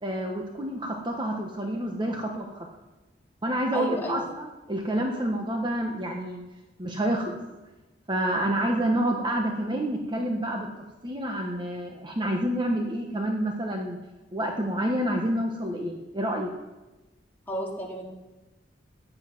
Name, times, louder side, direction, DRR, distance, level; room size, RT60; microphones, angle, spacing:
voice 1, 0.0-2.7 3.4-6.4 6.8-7.4 8.1-10.7 11.0-14.0 14.3-16.5, right 1 dB, 25° right, 2 dB, 1.3 m, -28 dB
voice 2, 3.7-4.2 17.5-18.0, left 1 dB, 10° left, -4 dB, 3.5 m, -32 dB
17.0 x 11.5 x 6.0 m, 1.1 s
head